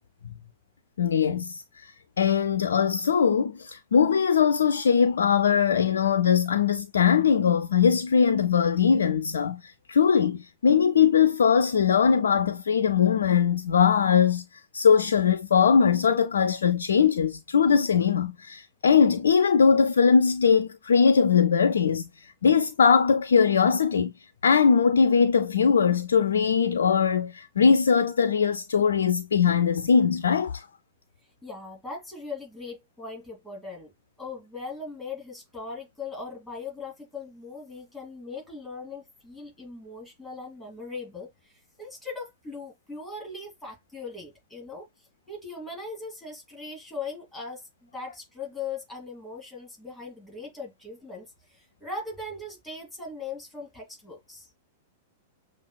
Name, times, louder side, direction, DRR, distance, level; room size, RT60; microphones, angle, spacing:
voice 1, 1.0-14.4 14.7-24.1 24.4-30.7, left 6 dB, 70° left, 0.3 m, -21 dB
voice 2, 31.4-33.9 34.2-41.5 41.8-44.9 45.3-54.5, left 3 dB, 5° left, 2.8 m, -39 dB
7.1 x 2.4 x 2.2 m
figure-of-eight pair, 100°, 0 cm